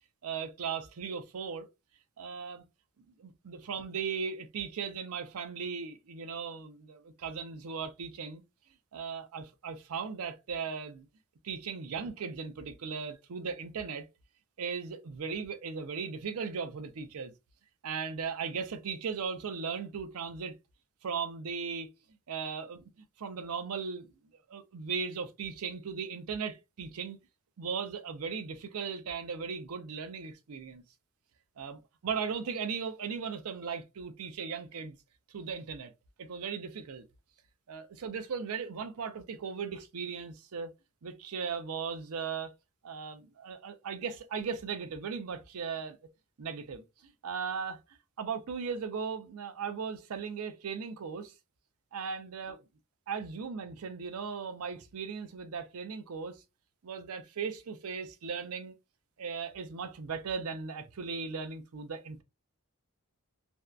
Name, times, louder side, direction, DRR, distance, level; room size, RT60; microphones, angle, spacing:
voice 1, 0.2-1.7 2.2-2.6 3.2-8.4 8.9-11.1 11.4-14.1 14.6-17.3 17.8-20.5 21.0-21.9 22.3-22.9 23.2-24.1 24.5-27.2 27.6-30.8 31.6-35.0 35.3-35.9 36.2-37.0 37.7-40.7 41.0-42.5 42.8-46.0 46.4-47.8 48.2-51.3 51.9-52.6 53.1-56.4 56.8-58.7 59.2-62.2, right 6 dB, 75° right, 0.5 m, -37 dB
2.6 x 2.2 x 2.3 m
head